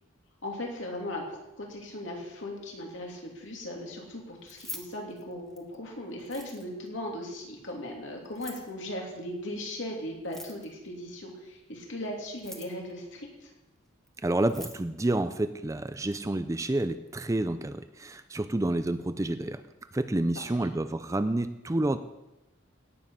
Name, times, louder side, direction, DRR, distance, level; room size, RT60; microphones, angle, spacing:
voice 1, 0.4-13.5 20.3-20.4, left 1 dB, 65° left, 0 dB, 2.9 m, -38 dB
Keys jangling, 4.4-5.8 6.2-6.9 8.2-8.7 10.2-10.9 12.2-12.9 14.1-14.2 14.4-14.8, left 1 dB, ahead, 1.1 m, -44 dB
voice 2, 14.2-19.6 19.9-22.0, right 1 dB, 15° right, 11 dB, 0.4 m, -29 dB
17.0 x 7.5 x 5.7 m, 0.96 s
head